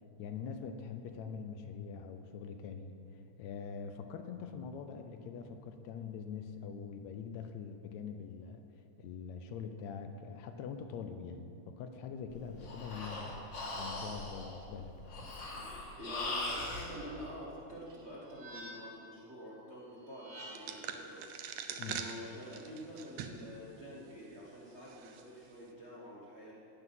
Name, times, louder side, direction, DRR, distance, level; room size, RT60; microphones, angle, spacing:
voice 1, 0.2-3.0 3.4-8.6 9.0-13.4 13.7-14.9 21.8-22.0, left 6 dB, 80° left, 7 dB, 1.9 m, -43 dB
Breathing, 12.3-16.9, left 2 dB, 55° left, 2.7 m, -40 dB
voice 2, 16.0-21.4 21.8-26.5, equal, 35° right, -6 dB, 1.1 m, -47 dB
sound 1, 17.9-19.1 20.0-20.9, equal, 55° right, 2.3 m, -50 dB
sound 2, 20.5-23.5 23.9-24.0 24.9-25.2, right 8 dB, 75° right, 1.7 m, -43 dB
17.0 x 6.0 x 5.8 m, 2.6 s
omnidirectional pair, 3.4 m